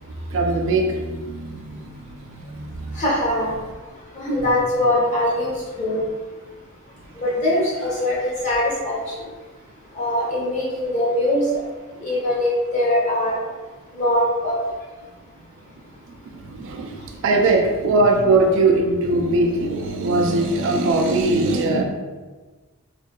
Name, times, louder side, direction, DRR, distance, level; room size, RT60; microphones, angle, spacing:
voice 1, 0.3-3.0 16.3-21.8, right 2 dB, 60° right, 3 dB, 0.3 m, -21 dB
voice 2, 2.9-3.5 4.1-6.1 7.2-9.3 9.9-11.4 12.0-13.4 13.9-14.6, left 1 dB, 35° left, -8 dB, 1.0 m, -22 dB
2.7 x 2.3 x 2.2 m, 1.3 s
head